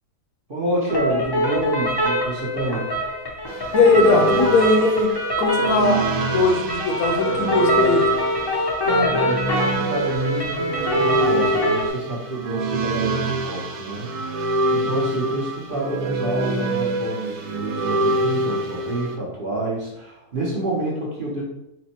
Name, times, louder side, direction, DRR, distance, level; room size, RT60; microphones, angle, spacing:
voice 1, 0.5-3.0 8.8-21.4, right 2 dB, 45° right, -5 dB, 0.8 m, -28 dB
sound 1, 0.9-11.9, equal, 35° left, 0.4 m, -24 dB
sound 2, 3.5-19.1, right 1 dB, 75° right, 1.1 m, -25 dB
voice 2, 3.7-5.1 5.4-6.0 6.3-8.1, left 3 dB, 75° left, 3 dB, 1.0 m, -19 dB
4.2 x 2.1 x 4.2 m, 0.85 s
omnidirectional pair, 1.6 m